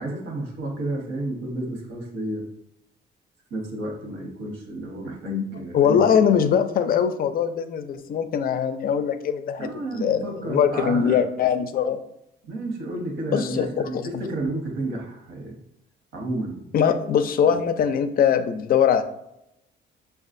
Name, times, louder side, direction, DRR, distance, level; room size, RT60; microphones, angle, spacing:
voice 1, 0.0-2.5 3.5-6.1 9.6-11.2 12.4-15.6 16.1-16.6 17.4-17.6, right 2 dB, 80° right, 0 dB, 1.1 m, -31 dB
voice 2, 5.7-12.0 13.3-14.1 16.7-19.0, left 8 dB, 50° left, 10 dB, 0.4 m, -22 dB
6.0 x 2.3 x 2.5 m, 0.81 s
cardioid pair, 115°, 20 cm